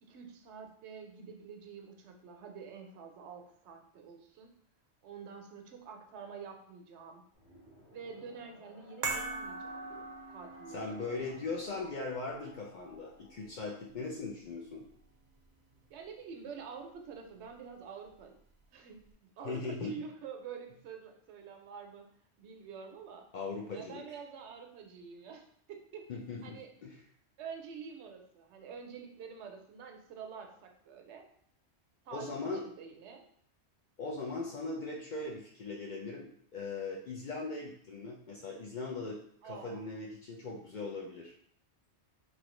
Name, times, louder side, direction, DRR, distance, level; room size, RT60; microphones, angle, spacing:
voice 1, 0.0-4.5 5.0-7.2 7.9-11.4 11.7-11.8 15.9-18.4 18.7-19.0 19.4-22.0 22.4-23.3 23.7-26.1 26.4-26.7 27.4-31.3 32.0-33.2 39.4-39.9, right 6 dB, 75° right, 3 dB, 0.9 m, -47 dB
sound 1, 7.3-13.9, left 1 dB, 40° left, 1.3 m, -59 dB
sound 2, 9.0-15.4 15.7-15.9, right 3 dB, 50° right, 0.5 m, -43 dB
voice 2, 10.7-14.8 19.4-19.9 23.3-24.0 26.1-27.0 32.1-32.7 34.0-41.3, left 3 dB, 60° left, -2 dB, 0.5 m, -39 dB
3.1 x 2.6 x 3.0 m, 0.64 s
omnidirectional pair, 1.2 m